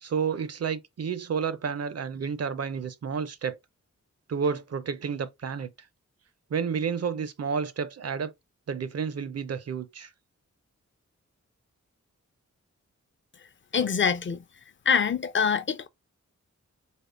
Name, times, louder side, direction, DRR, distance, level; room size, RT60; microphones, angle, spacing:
voice 1, 0.0-3.6 4.3-5.7 6.5-8.3 8.7-10.1, right 6 dB, 55° right, 0.5 m, -30 dB
voice 2, 13.7-14.4 14.9-15.9, left 6 dB, 40° left, 0.5 m, -24 dB
3.5 x 2.1 x 3.6 m
wide cardioid pair, 75°, 30 cm